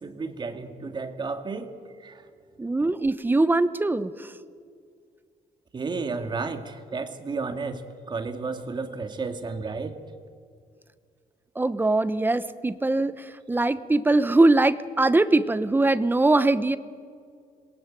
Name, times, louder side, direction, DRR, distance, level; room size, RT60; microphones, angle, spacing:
voice 1, 0.0-2.2 5.7-10.0, right 4 dB, 30° right, 8 dB, 2.0 m, -32 dB
voice 2, 2.6-4.3 11.5-16.8, right 2 dB, 15° right, 14 dB, 0.9 m, -22 dB
26.5 x 21.5 x 9.1 m, 2.2 s
cardioid pair, 140°, 14 cm